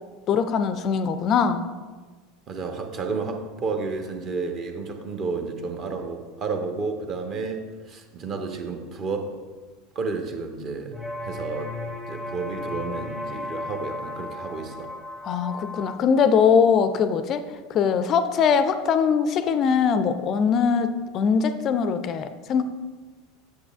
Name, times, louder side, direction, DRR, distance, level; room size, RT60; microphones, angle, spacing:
voice 1, 0.3-1.6 15.2-17.4 17.7-22.6, left 6 dB, 40° left, 10 dB, 0.4 m, -21 dB
voice 2, 2.5-9.3 9.9-10.9 11.2-14.9, right 4 dB, 35° right, 5 dB, 0.9 m, -31 dB
sound 1, 10.9-16.0, left 2 dB, ahead, 0.6 m, -35 dB
9.9 x 7.2 x 2.4 m, 1.4 s
figure-of-eight pair, 80°, 0 cm